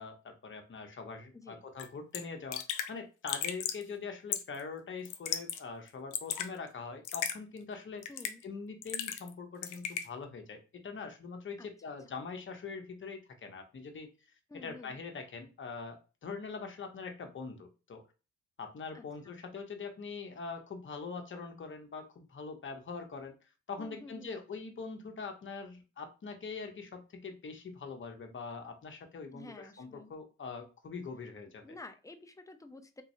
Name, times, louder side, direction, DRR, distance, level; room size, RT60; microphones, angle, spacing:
voice 1, 0.0-8.0 8.4-14.1 14.6-18.0 18.6-23.3 23.7-31.6, left 4 dB, 40° left, 4 dB, 1.0 m, -43 dB
Raindrop / Drip, 1.8-1.9 2.1-2.2 2.5-2.9 3.3-3.8 4.3-4.6 5.1-5.6 5.9-6.5 7.1-7.4 8.0-8.4 8.8-9.3 9.6-10.1, left 10 dB, 90° left, 0.6 m, -35 dB
voice 2, 8.1-8.4 11.6-11.7 14.5-15.0 18.9-19.4 23.8-24.4 29.3-30.1 31.6-33.0, left 3 dB, 10° left, 7 dB, 0.6 m, -50 dB
3.8 x 2.9 x 2.7 m, 0.32 s
cardioid pair, 90°, 30 cm